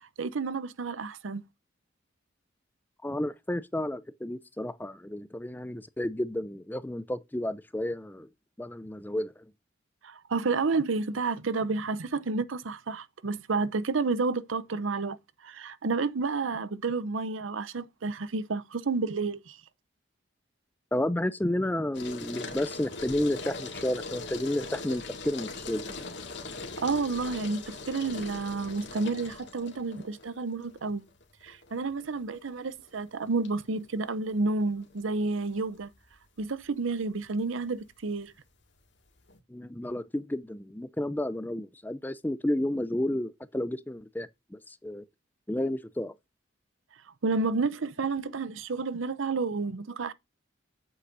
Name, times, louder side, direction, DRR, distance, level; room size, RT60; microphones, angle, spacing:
voice 1, 0.2-1.4 10.0-15.2 15.4-19.6 26.8-31.0 31.4-35.9 36.4-38.3 47.2-50.1, right 3 dB, 80° right, 0.7 m, -30 dB
voice 2, 3.0-8.3 8.6-9.3 20.9-26.0 39.5-45.0 45.5-46.1, left 1 dB, 10° left, 0.4 m, -31 dB
sound 1, 21.9-39.4, left 3 dB, 60° left, 2.1 m, -42 dB
8.5 x 8.0 x 2.6 m
head